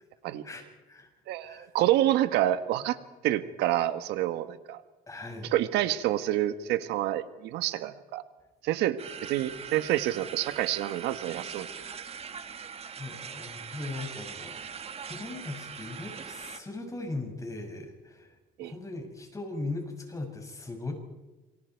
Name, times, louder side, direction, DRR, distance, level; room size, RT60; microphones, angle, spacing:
voice 1, 0.4-1.1 1.4-1.7 5.1-5.5 12.3-12.6 13.0-18.3 18.6-20.9, left 2 dB, 20° left, 3 dB, 6.6 m, -39 dB
voice 2, 1.3-3.0 3.2-4.8 5.5-8.2 8.6-11.8 18.6-18.7, right 13 dB, 90° right, 11 dB, 1.5 m, -28 dB
sound 1, 9.0-16.6, right 6 dB, 35° right, 1.7 m, -41 dB
28.5 x 24.0 x 4.7 m, 1.1 s
cardioid pair, 110°, 17 cm